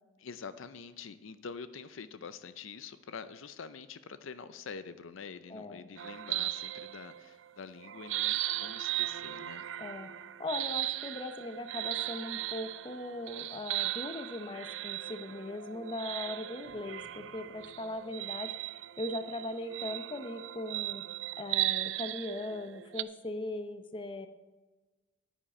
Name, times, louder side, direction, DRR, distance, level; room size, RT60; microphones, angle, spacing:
voice 1, 0.2-9.7 17.9-18.1, left 5 dB, 75° left, 12 dB, 0.5 m, -46 dB
voice 2, 5.5-5.9 9.8-10.1 10.4-18.5 19.0-21.1 21.4-24.3, left 1 dB, 25° left, 9 dB, 0.6 m, -39 dB
sound 1, 6.0-7.4 7.8-23.0, right 15 dB, 65° right, 0.4 m, -37 dB
10.0 x 9.8 x 4.3 m, 1.2 s
head